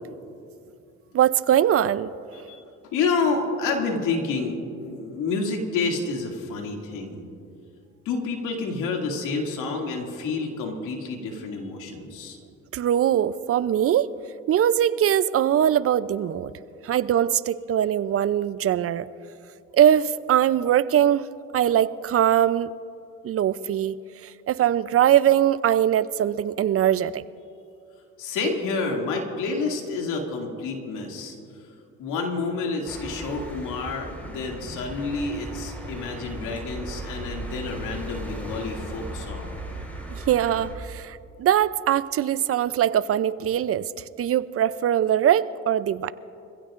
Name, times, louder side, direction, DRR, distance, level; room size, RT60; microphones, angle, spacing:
voice 1, 1.1-2.1 12.7-14.1 14.5-16.5 16.8-19.1 19.7-21.3 21.5-22.7 23.2-23.9 24.2-27.2 40.1-43.9 44.2-46.1, right 10 dB, 50° right, 16 dB, 0.5 m, -21 dB
voice 2, 2.9-7.2 8.0-12.4 28.2-31.4 32.0-39.6, left 4 dB, 85° left, 1 dB, 2.5 m, -29 dB
sound 1, 32.9-40.8, right 1 dB, 5° left, 4.4 m, -37 dB
25.5 x 15.5 x 2.5 m, 2.6 s
supercardioid pair, 75°, 31 cm